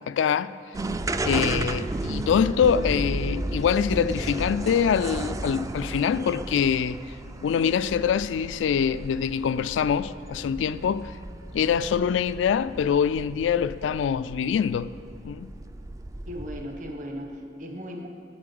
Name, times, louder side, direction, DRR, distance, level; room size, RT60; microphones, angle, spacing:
voice 1, 0.1-0.6 1.2-7.0 7.4-11.1 11.5-14.9 15.2-15.5, left 7 dB, 85° left, 0.3 m, -24 dB
sound 1, 0.7-16.9, right 2 dB, 20° right, 0.3 m, -34 dB
voice 2, 16.3-18.1, equal, 45° right, 1.2 m, -37 dB
9.6 x 7.3 x 8.4 m
head